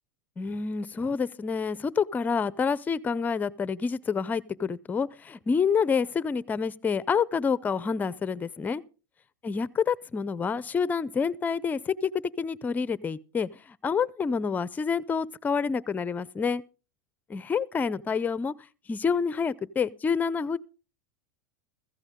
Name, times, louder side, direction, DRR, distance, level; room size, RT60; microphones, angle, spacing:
voice 1, 0.4-8.8 9.4-12.1 12.4-16.6 17.3-18.5 18.9-20.6, left 6 dB, 15° left, 0.6 m, -28 dB
15.5 x 15.0 x 3.7 m
supercardioid pair, 130°, 10 cm